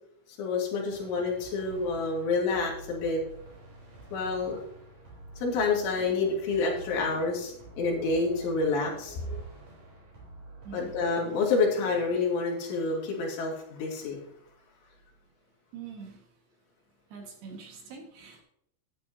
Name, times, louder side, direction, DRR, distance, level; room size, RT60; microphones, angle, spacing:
voice 1, 0.4-3.2 4.1-4.6 5.4-9.4 10.7-14.2, left 3 dB, 75° left, -2 dB, 5.1 m, -28 dB
sound 1, 0.9-11.1, right 2 dB, 35° right, 4.6 m, -49 dB
voice 2, 15.7-16.3 17.1-18.4, right 6 dB, 60° right, 1 dB, 3.5 m, -44 dB
13.0 x 11.0 x 2.8 m, 0.71 s
omnidirectional pair, 5.6 m